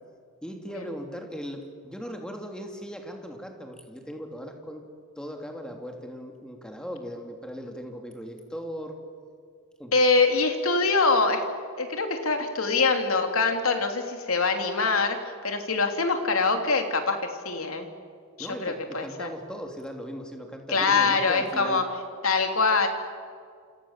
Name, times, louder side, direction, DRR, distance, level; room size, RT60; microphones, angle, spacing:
voice 1, 0.4-4.9 5.2-9.0 9.8-9.9 18.4-21.8, equal, 5° left, 3 dB, 3.0 m, -38 dB
voice 2, 9.9-11.4 11.8-15.2 15.4-17.9 18.4-19.3 20.7-21.8 22.2-22.9, left 4 dB, 80° left, 5 dB, 3.3 m, -24 dB
28.0 x 27.5 x 7.5 m, 2.2 s
head